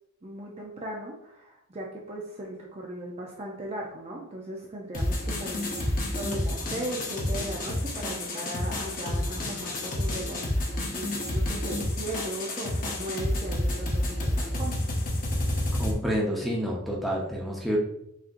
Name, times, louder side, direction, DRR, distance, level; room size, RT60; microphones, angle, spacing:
voice 1, 0.2-14.8, right 1 dB, 30° right, -2 dB, 0.5 m, -38 dB
sound 1, 4.9-15.9, left 1 dB, 40° left, 0.9 m, -29 dB
voice 2, 15.8-17.8, equal, ahead, -3 dB, 0.8 m, -28 dB
6.3 x 2.8 x 2.6 m, 0.78 s
head